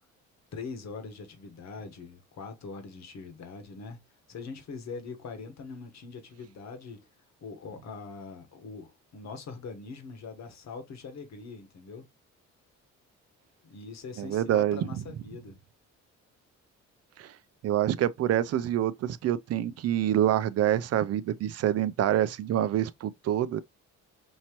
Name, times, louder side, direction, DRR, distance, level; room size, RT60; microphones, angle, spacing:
voice 1, 0.5-4.0 4.3-7.1 7.4-12.1 13.6-15.6, left 4 dB, 60° left, 1.3 m, -42 dB
voice 2, 14.2-14.9 17.2-17.3 17.6-23.6, right 11 dB, 55° right, 0.4 m, -26 dB
5.5 x 2.9 x 3.0 m
cardioid pair, 90°, 30 cm